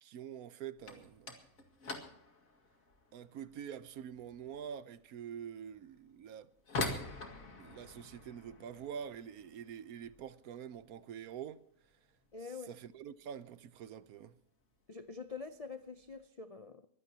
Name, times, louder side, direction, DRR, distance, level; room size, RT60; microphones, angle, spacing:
voice 1, 0.0-1.3 3.1-6.5 7.5-11.6 12.7-14.4, right 8 dB, 75° right, 1.2 m, -46 dB
sound 1, 0.8-11.5 11.8-12.4 12.7-13.0 13.3-13.4 14.1-14.2 15.1-15.3 15.7-16.1, left 2 dB, 65° left, 2.5 m, -45 dB
voice 2, 12.3-12.7 14.9-16.9, left 5 dB, 50° left, 0.4 m, -46 dB
23.5 x 15.5 x 2.9 m
omnidirectional pair, 1.6 m